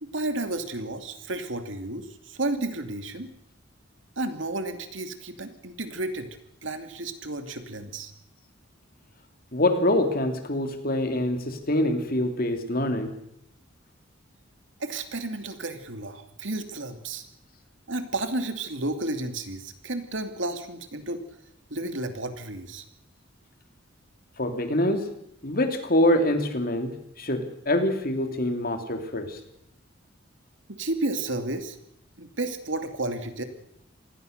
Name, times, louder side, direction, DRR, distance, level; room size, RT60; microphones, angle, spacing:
voice 1, 0.0-3.3 4.2-6.4 6.6-8.1 14.8-17.3 17.9-21.2 21.7-22.8 30.7-31.8 32.2-33.4, right 2 dB, 70° right, 8 dB, 2.8 m, -32 dB
voice 2, 9.5-13.2 24.4-25.1 25.4-26.9 27.2-29.4, left 1 dB, 45° left, 7 dB, 3.0 m, -25 dB
26.5 x 20.0 x 6.7 m, 0.78 s
head